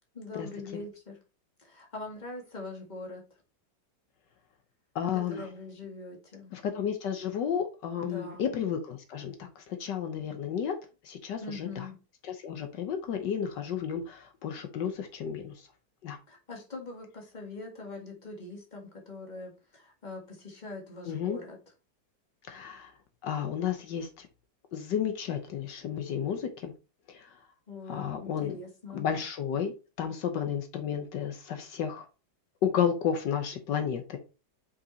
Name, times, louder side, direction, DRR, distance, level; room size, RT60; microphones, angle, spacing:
voice 1, 0.1-1.2 1.6-3.2 5.1-6.5 8.0-8.5 11.4-12.0 16.3-21.6 27.7-29.1, left 3 dB, 25° left, 1 dB, 2.0 m, -43 dB
voice 2, 4.9-5.4 6.5-10.7 11.0-11.8 12.4-15.5 16.0-16.2 21.1-21.4 22.5-22.9 23.2-24.3 24.7-26.7 27.1-27.3 27.9-28.5 28.9-29.7 30.0-32.0 32.6-34.2, left 8 dB, 75° left, 6 dB, 1.5 m, -32 dB
5.9 x 5.3 x 4.0 m, 0.32 s
omnidirectional pair, 1.9 m